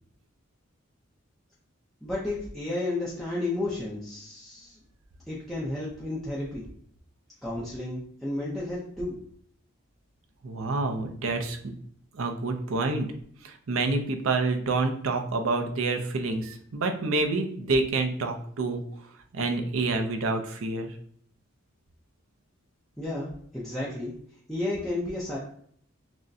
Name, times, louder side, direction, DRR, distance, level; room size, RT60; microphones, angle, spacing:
voice 1, 2.0-4.7 5.3-6.6 7.4-9.2 23.0-24.1 24.5-25.4, left 2 dB, ahead, -7 dB, 0.6 m, -32 dB
voice 2, 10.4-11.7 12.1-13.1 13.4-18.8 19.3-20.9, right 3 dB, 75° right, 5 dB, 0.6 m, -28 dB
6.1 x 2.1 x 2.6 m, 0.62 s
head